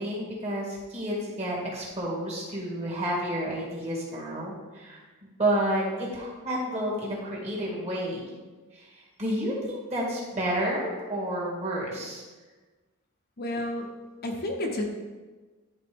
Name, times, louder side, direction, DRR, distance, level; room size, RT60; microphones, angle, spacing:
voice 1, 0.0-8.3 8.7-8.9 9.2-12.2, right 1 dB, 30° right, -5 dB, 2.0 m, -30 dB
voice 2, 13.4-13.9 14.2-14.9, left 1 dB, 45° left, 1 dB, 0.9 m, -30 dB
10.5 x 4.0 x 3.4 m, 1.3 s
head